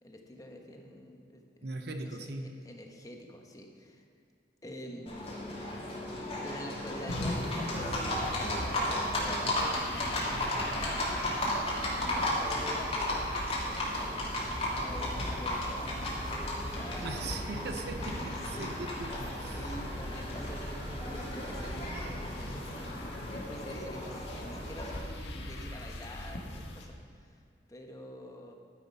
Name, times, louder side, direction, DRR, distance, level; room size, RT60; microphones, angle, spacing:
voice 1, 0.0-1.5 2.2-4.1 4.6-5.1 6.4-9.9 10.4-11.4 12.1-14.1 14.7-17.4 18.0-18.9 19.5-27.4 27.7-28.5, equal, 20° left, 2 dB, 1.1 m, -47 dB
voice 2, 1.6-2.6 17.0-19.7, right 2 dB, 65° right, 6 dB, 0.8 m, -40 dB
Livestock farm animals working animals, 5.1-25.0, left 1 dB, 35° left, 2.7 m, -35 dB
sound 1, 7.1-26.9, left 1 dB, 75° left, 1.6 m, -41 dB
11.5 x 9.7 x 5.5 m, 2.3 s
head